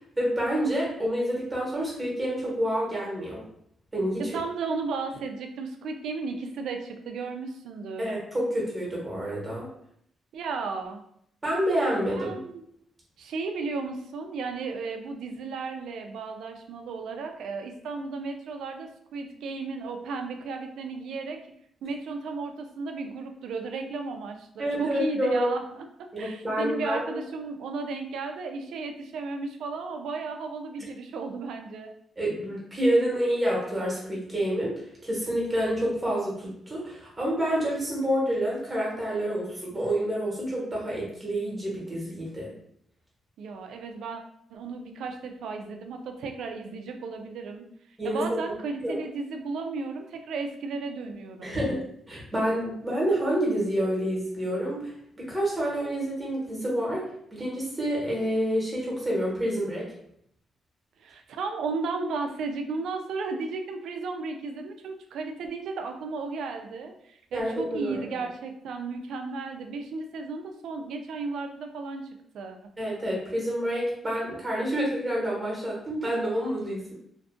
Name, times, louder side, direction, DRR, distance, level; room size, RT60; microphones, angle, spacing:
voice 1, 0.2-3.4 3.9-4.4 8.0-9.7 11.4-12.3 24.6-25.4 26.1-27.0 32.2-42.5 48.0-48.6 48.8-49.0 51.4-51.8 52.1-57.0 57.3-59.9 67.3-68.1 72.8-76.9, equal, 10° right, -4 dB, 1.0 m, -28 dB
voice 2, 4.3-8.1 10.3-11.0 12.1-12.6 13.2-21.4 21.8-25.8 26.2-31.9 43.4-44.2 44.5-47.7 48.0-51.6 61.0-72.0 72.3-72.6, right 4 dB, 80° right, 5 dB, 0.3 m, -34 dB
2.5 x 2.4 x 2.5 m, 0.70 s
cardioid pair, 135°, 0 cm